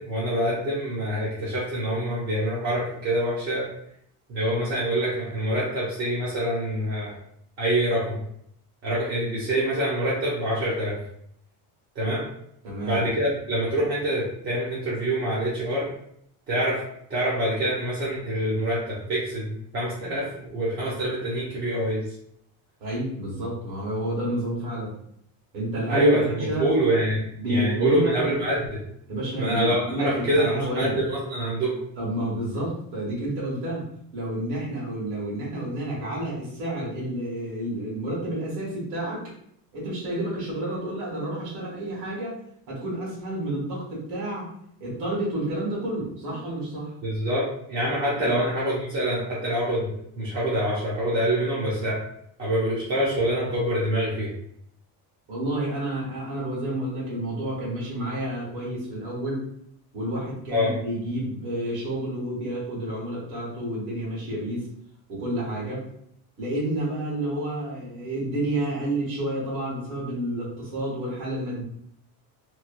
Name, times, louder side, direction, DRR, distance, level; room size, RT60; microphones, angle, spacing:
voice 1, 0.0-3.7 4.3-7.2 7.6-8.2 8.8-11.0 11.9-12.2 12.8-15.9 16.5-16.8 17.1-22.0 25.9-28.8 29.4-31.7 47.0-52.0 52.4-54.3 60.5-60.7, right 1 dB, 30° right, -9 dB, 0.7 m, -25 dB
voice 2, 12.6-13.0 22.8-24.9 25.5-26.7 27.4-28.1 29.1-31.0 32.0-33.8 34.1-39.3 39.7-42.4 42.7-44.5 44.8-46.9 48.1-48.4 55.3-59.4 59.9-64.6 65.1-65.8 66.4-71.6, right 1 dB, 65° right, -6 dB, 1.4 m, -30 dB
3.0 x 2.2 x 2.5 m, 0.69 s
cardioid pair, 175°, 40 cm